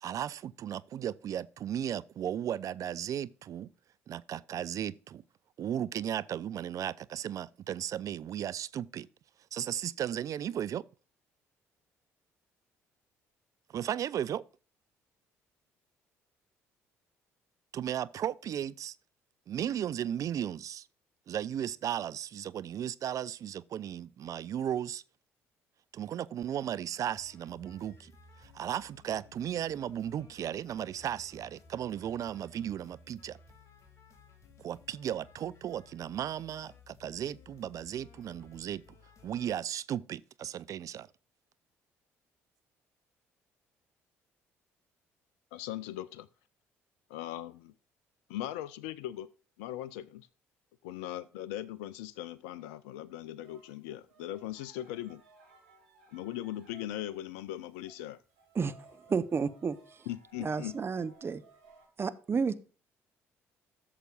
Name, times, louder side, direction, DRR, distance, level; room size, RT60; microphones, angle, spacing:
voice 1, 0.0-3.7 4.1-5.2 5.6-9.1 9.5-10.8 13.7-14.4 17.7-19.0 19.5-20.9 21.3-25.0 25.9-28.1 28.4-33.4 34.6-38.8 39.2-41.1, right 10 dB, 50° right, 0.4 m, -35 dB
sound 1, 26.9-39.5, left 4 dB, 45° left, 2.3 m, -58 dB
voice 2, 45.5-46.3 47.1-47.5 48.3-49.3 49.6-50.0 50.8-55.2 56.1-58.2 60.1-60.8, left 13 dB, 75° left, 0.4 m, -39 dB
sound 2, 53.4-57.2 57.6-61.9, right 4 dB, 80° right, 2.1 m, -60 dB
voice 3, 59.1-59.8 60.4-61.4 62.0-62.5, right 5 dB, 35° right, 0.8 m, -31 dB
13.5 x 6.7 x 2.4 m
hypercardioid pair, 50°, 7 cm